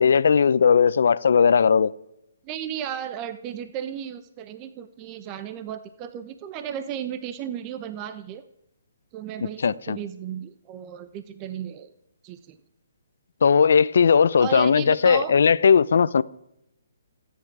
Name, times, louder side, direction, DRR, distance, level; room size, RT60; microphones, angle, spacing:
voice 1, 0.0-1.9 9.6-10.0 13.4-16.2, left 6 dB, 65° left, 0.7 m, -18 dB
voice 2, 2.4-8.4 9.1-11.9 12.2-12.6 14.4-15.3, right 9 dB, 30° right, 1.0 m, -34 dB
28.0 x 10.0 x 4.8 m
hypercardioid pair, 140°, 0 cm